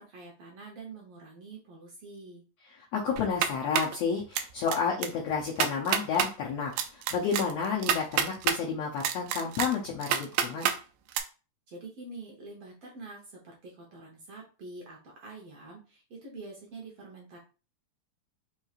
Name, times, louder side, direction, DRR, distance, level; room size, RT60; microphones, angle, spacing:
voice 1, 0.0-2.4 11.7-17.4, right 3 dB, 65° right, -1 dB, 1.6 m, -46 dB
voice 2, 2.9-10.7, left 5 dB, 75° left, -2 dB, 1.5 m, -31 dB
sound 1, 3.2-4.0 4.3-4.8 5.0-5.1 5.5-6.3 6.8-8.6 9.0-10.8 11.1-11.2, right 9 dB, 85° right, 2.1 m, -28 dB
5.3 x 3.0 x 2.4 m, 0.34 s
omnidirectional pair, 3.8 m